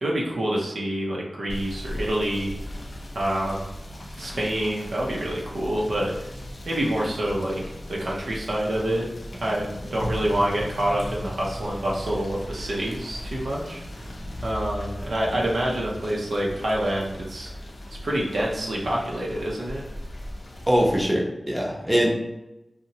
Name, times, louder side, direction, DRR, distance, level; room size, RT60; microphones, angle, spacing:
voice 1, 0.0-2.5 3.1-3.7 4.2-6.1 6.6-7.6 8.0-9.1 9.4-13.8 14.4-17.5 18.0-19.8, right 1 dB, 85° right, -3 dB, 0.5 m, -27 dB
Rain / Motor vehicle (road), 1.5-21.1, equal, 60° left, 0.5 m, -37 dB
voice 2, 20.7-22.1, equal, 15° right, -3 dB, 0.7 m, -22 dB
2.7 x 2.0 x 2.8 m, 0.93 s
wide cardioid pair, 55°, 0 cm